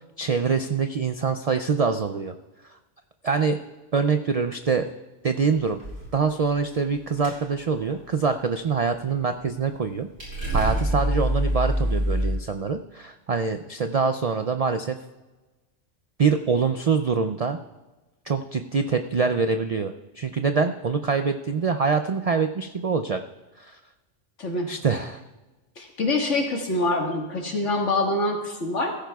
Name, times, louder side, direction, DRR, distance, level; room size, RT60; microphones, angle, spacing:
voice 1, 0.2-2.3 3.2-3.6 3.9-4.9 5.2-5.8 6.1-10.1 10.5-15.0 16.2-17.6 18.3-23.2 23.6-23.8 24.7-25.2, right 5 dB, 60° right, 7 dB, 0.4 m, -24 dB
sound 1, 5.6-6.2 6.5-7.0 7.2-7.5 7.7-7.9 9.8-9.9 10.2-12.3, equal, 75° right, 4.8 m, -25 dB
voice 2, 24.4-24.7 25.8-29.0, left 2 dB, 75° left, 1 dB, 2.0 m, -25 dB
16.5 x 14.0 x 2.3 m, 1.2 s
omnidirectional pair, 1.3 m